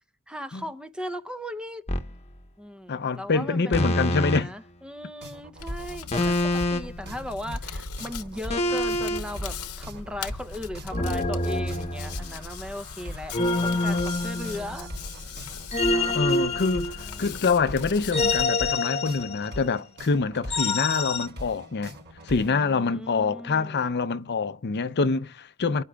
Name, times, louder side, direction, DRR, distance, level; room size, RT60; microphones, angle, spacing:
voice 1, 0.3-1.8 2.6-3.9 4.2-13.3 13.6-14.9 15.9-16.2 17.0-17.3 22.4-24.0, equal, 5° right, 0.6 m, -38 dB
sound 1, 1.9-2.1 3.7-4.4 6.1-7.0 8.5-9.2 10.9-12.4 13.3-14.9 15.7-17.4 18.1-19.6 20.5-21.3, left 2 dB, 30° left, 1.0 m, -26 dB
voice 2, 2.9-4.5 16.1-22.0 22.2-25.8, left 4 dB, 50° left, 0.6 m, -26 dB
sound 2, 5.2-22.5, equal, 50° right, 5.1 m, -41 dB
Hands, 5.6-18.4, left 4 dB, 75° left, 1.0 m, -39 dB
28.5 x 9.6 x 2.3 m
head